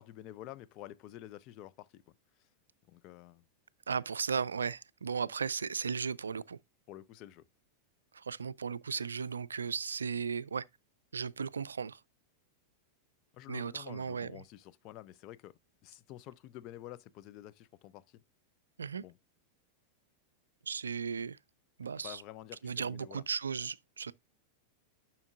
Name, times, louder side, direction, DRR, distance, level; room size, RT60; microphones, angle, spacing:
voice 1, 0.0-2.0 2.9-3.4 6.9-7.4 13.3-15.5 15.8-18.2 19.0-19.2 22.0-23.2, left 14 dB, 40° left, 0.5 m, -49 dB
voice 2, 3.9-6.6 8.1-10.6 11.1-12.0 13.5-14.4 18.8-19.0 20.7-21.4 21.8-22.2 22.6-24.1, right 6 dB, 70° right, 0.4 m, -36 dB
10.5 x 5.8 x 2.5 m
figure-of-eight pair, 90°, 0 cm